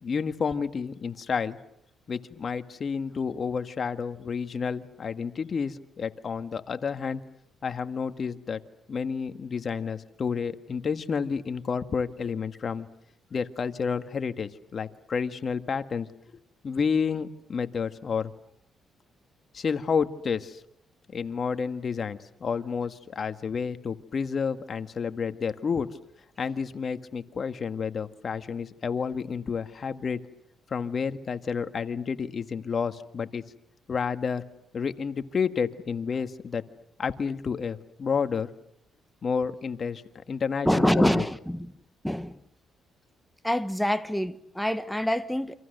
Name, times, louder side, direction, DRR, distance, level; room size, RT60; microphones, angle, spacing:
voice 1, 0.0-1.6 2.1-7.2 7.6-8.6 8.9-12.9 13.3-16.1 16.6-18.3 19.5-20.6 21.1-25.9 26.4-30.2 30.7-33.4 33.9-34.4 34.7-36.6 37.0-38.5 39.2-40.0 40.3-41.3, left 6 dB, 45° left, 1.7 m, -30 dB
voice 2, 40.6-41.7 42.0-42.4 43.4-45.6, equal, 5° left, 1.3 m, -25 dB
29.5 x 26.5 x 6.7 m
cardioid pair, 90°, 0 cm